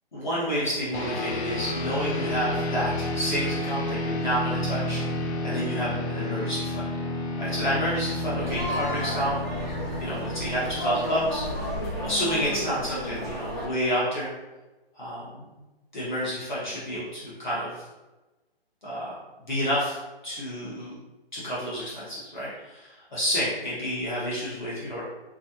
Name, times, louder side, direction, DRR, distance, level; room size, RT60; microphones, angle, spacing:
voice 1, 0.1-5.0 5.4-6.9 7.4-9.4 10.0-14.3 14.9-15.4 15.9-17.8 18.8-19.1 19.5-20.0 20.2-21.0 21.3-25.0, equal, 45° left, -7 dB, 1.2 m, -29 dB
sound 1, 0.9-12.6, left 1 dB, 85° left, 0.7 m, -31 dB
sound 2, 8.4-13.7, equal, 15° left, 0.9 m, -32 dB
3.6 x 3.1 x 2.8 m, 1.1 s
hypercardioid pair, 180°, 32 cm